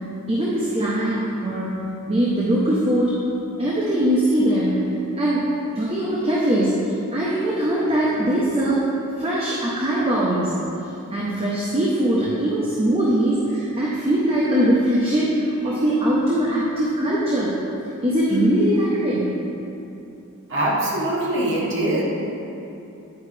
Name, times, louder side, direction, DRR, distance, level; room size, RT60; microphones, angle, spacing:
voice 1, 0.3-1.8 2.1-3.2 3.6-4.8 5.2-5.5 5.7-8.8 9.2-10.5 11.1-17.5 18.0-19.3, right 1 dB, 25° right, -6 dB, 0.7 m, -21 dB
voice 2, 20.5-22.0, right 1 dB, 55° right, -6 dB, 1.5 m, -22 dB
9.5 x 4.9 x 3.3 m, 2.9 s
head